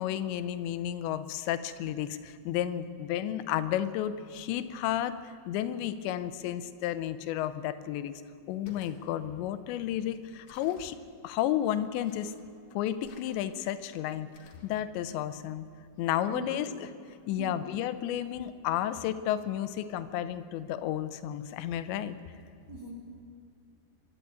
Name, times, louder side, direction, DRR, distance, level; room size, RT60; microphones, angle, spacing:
voice 1, 0.0-5.2 5.5-8.1 8.5-11.0 11.2-12.3 12.7-14.3 14.6-15.7 16.0-16.9 17.3-22.2, left 11 dB, 85° left, 13 dB, 3.0 m, -32 dB
sound 1, 8.5-9.0 10.5-10.9 12.0-12.5 13.0-13.7 14.3-14.7, left 4 dB, 50° left, 2.8 m, -55 dB
voice 2, 16.3-16.8 17.4-17.5 22.7-22.9, right 4 dB, 30° right, -2 dB, 2.7 m, -41 dB
23.5 x 12.0 x 9.4 m, 2.4 s
omnidirectional pair, 5.1 m